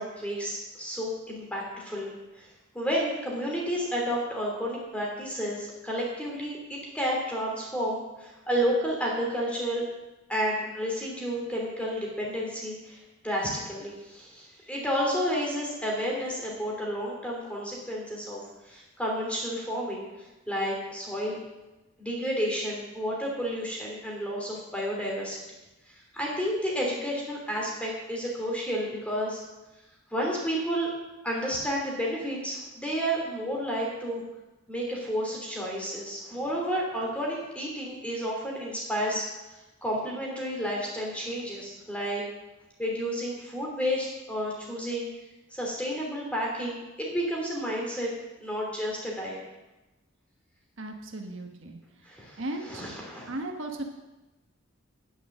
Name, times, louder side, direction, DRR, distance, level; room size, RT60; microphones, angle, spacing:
voice 1, 0.0-2.5 2.7-9.8 10.3-20.0 20.5-21.4 22.0-25.4 25.9-29.4 30.1-30.9 31.2-34.2 34.7-39.2 39.8-42.2 42.8-45.1 45.5-48.1 48.4-49.4 52.0-53.3, equal, 5° left, -2 dB, 3.0 m, -31 dB
voice 2, 50.8-51.8 52.4-52.8 53.3-53.8, right 2 dB, 65° right, 3 dB, 1.3 m, -36 dB
10.0 x 9.5 x 7.3 m, 1.0 s
head